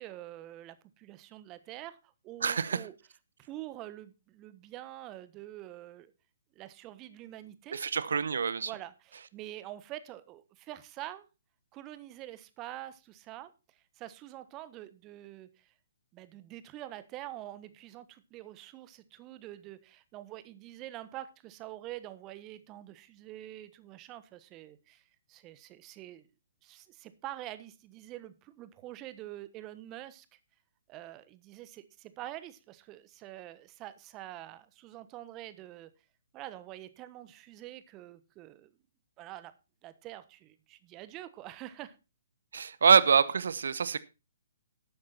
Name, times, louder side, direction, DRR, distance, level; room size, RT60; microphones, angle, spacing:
voice 1, 0.0-2.9 3.4-6.1 6.5-7.8 8.6-11.2 11.7-15.7 16.1-25.0 25.3-26.3 26.6-30.4 30.9-35.9 36.3-38.7 39.2-39.5 39.8-42.0, right 14 dB, 25° right, 1.2 m, -46 dB
voice 2, 2.4-2.8 7.7-8.7 42.5-44.0, right 6 dB, 65° right, 0.9 m, -25 dB
12.5 x 8.6 x 4.3 m
figure-of-eight pair, 130°, 0 cm